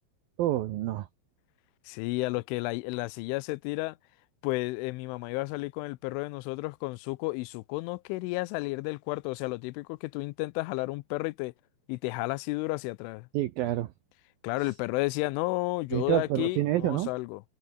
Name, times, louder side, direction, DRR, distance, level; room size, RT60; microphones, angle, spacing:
voice 1, 0.4-1.1 13.3-13.9 15.9-17.1, right 14 dB, 85° right, 2.1 m, -28 dB
voice 2, 1.9-4.0 4.4-11.5 11.9-13.3 14.4-17.4, left 23 dB, 85° left, 3.1 m, -32 dB
omnidirectional pair, 5.5 m